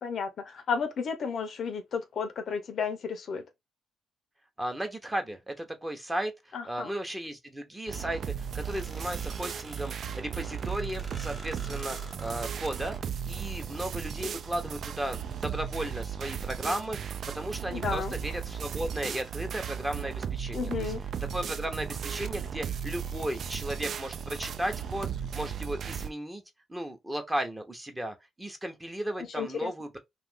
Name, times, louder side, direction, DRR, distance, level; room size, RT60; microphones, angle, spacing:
voice 1, 0.0-3.4 6.5-6.9 17.7-18.2 20.5-21.0 29.2-29.7, left 6 dB, 60° left, 0.6 m, -33 dB
voice 2, 4.6-13.0 13.2-20.9 21.3-26.4 26.7-30.0, right 1 dB, 10° right, 0.8 m, -35 dB
sound 1, 7.9-26.1, right 8 dB, 55° right, 0.3 m, -36 dB
sound 2, 8.6-13.0, right 2 dB, 35° right, 1.1 m, -48 dB
2.7 x 2.5 x 3.5 m
cardioid pair, 90°, 0 cm